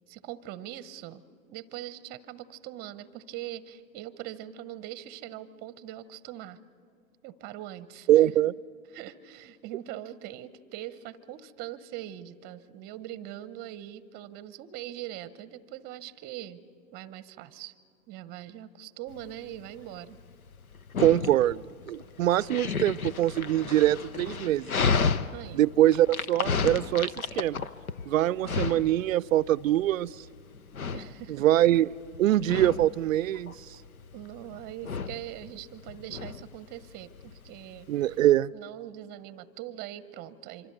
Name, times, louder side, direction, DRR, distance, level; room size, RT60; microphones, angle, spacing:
voice 1, 0.1-1.2 1.5-6.6 7.2-8.3 8.9-16.6 16.9-17.7 18.1-20.2 25.3-25.6 30.9-31.4 34.1-38.2 38.5-40.7, right 13 dB, 25° right, 16 dB, 0.7 m, -42 dB
voice 2, 8.1-8.5 21.0-24.7 25.5-27.7 28.1-30.1 31.4-33.5 37.9-38.5, right 13 dB, 70° right, 22 dB, 0.5 m, -23 dB
Dog, 19.1-38.3, left 5 dB, 90° left, 0.9 m, -33 dB
26.0 x 25.0 x 6.8 m, 2.4 s
hypercardioid pair, 120°, 41 cm